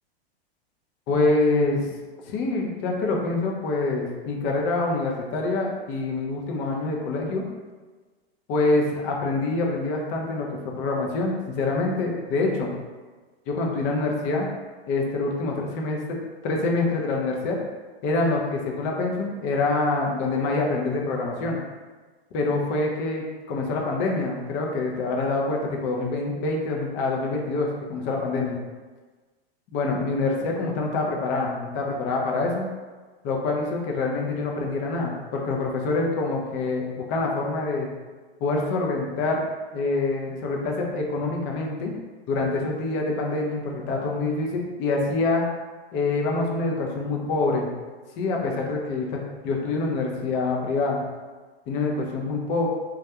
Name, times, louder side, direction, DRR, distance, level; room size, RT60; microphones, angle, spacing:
voice 1, 1.1-1.8 2.3-7.5 8.5-12.7 13.5-14.5 14.9-16.2 16.4-17.6 18.0-21.6 22.3-28.6 29.7-32.7 33.2-37.9 38.4-39.4 39.7-41.9 42.3-45.4 45.9-47.7 48.2-51.0 51.7-52.7, left 3 dB, 35° left, 0 dB, 0.5 m, -26 dB
2.3 x 2.1 x 2.8 m, 1.3 s
hypercardioid pair, 115°, 32 cm